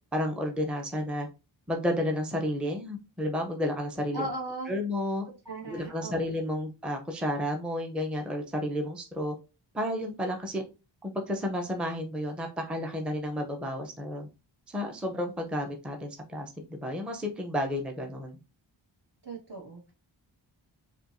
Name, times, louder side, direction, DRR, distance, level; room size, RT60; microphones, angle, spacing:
voice 1, 0.1-1.3 1.7-4.2 4.7-5.2 5.7-9.3 9.7-10.6 11.0-14.3 14.7-18.4, left 1 dB, ahead, 2 dB, 0.6 m, -31 dB
voice 2, 4.1-4.7 5.4-6.3 19.2-19.9, right 2 dB, 55° right, -3 dB, 1.5 m, -37 dB
4.4 x 2.4 x 2.6 m, 0.30 s
wide cardioid pair, 65°, 47 cm